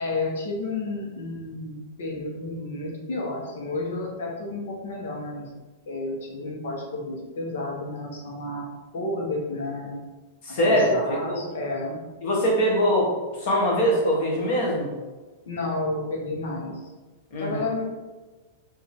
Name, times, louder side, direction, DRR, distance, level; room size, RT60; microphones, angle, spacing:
voice 1, 0.0-5.5 5.9-8.7 8.9-10.0 10.6-12.0 15.4-16.8 17.4-17.8, left 2 dB, 70° left, -1 dB, 1.3 m, -31 dB
voice 2, 10.4-11.4 12.2-13.1 13.4-14.9 17.3-17.6, equal, 40° left, -3 dB, 1.3 m, -22 dB
4.6 x 2.8 x 3.6 m, 1.3 s
supercardioid pair, 175°, 0 cm